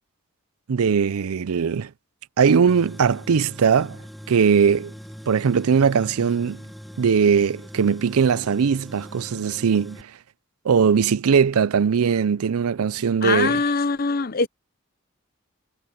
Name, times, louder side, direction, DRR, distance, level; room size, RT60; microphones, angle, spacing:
voice 1, 0.7-1.9 2.4-4.0 4.3-4.9 5.3-6.6 7.0-10.1 10.6-13.6, right 6 dB, 75° right, 0.5 m, -20 dB
Tools, 2.7-10.0, equal, ahead, 3.2 m, -41 dB
voice 2, 13.2-14.5, left 4 dB, 40° left, 0.7 m, -22 dB
head